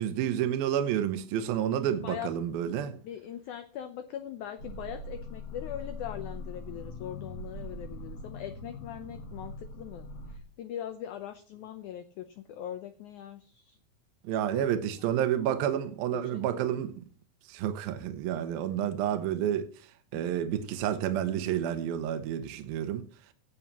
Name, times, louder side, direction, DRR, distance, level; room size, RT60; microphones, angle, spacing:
voice 1, 0.0-2.9 14.2-17.1 17.5-19.7 20.1-23.0, right 10 dB, 75° right, 2.7 m, -30 dB
voice 2, 1.9-2.3 2.9-13.8 14.5-15.1 16.1-16.9 20.1-20.2, left 10 dB, 85° left, 1.7 m, -41 dB
sound 1, 4.6-10.4, left 2 dB, 50° left, 2.2 m, -42 dB
17.5 x 8.5 x 2.9 m
omnidirectional pair, 4.4 m